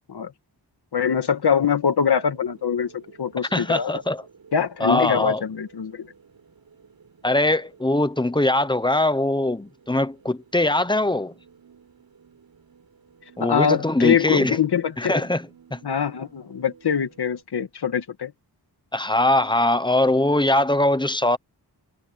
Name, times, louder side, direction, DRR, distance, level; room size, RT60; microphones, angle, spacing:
voice 1, 0.9-4.0 4.5-6.1 13.4-15.1 15.8-18.3, left 7 dB, 70° left, 2.1 m, -23 dB
sound 1, 1.0-17.4, right 6 dB, 55° right, 6.2 m, -53 dB
voice 2, 3.5-4.2 4.8-5.4 7.2-11.3 13.4-14.6 15.0-15.8 18.9-21.4, left 1 dB, 10° left, 0.9 m, -21 dB
wide cardioid pair, 165°, 41 cm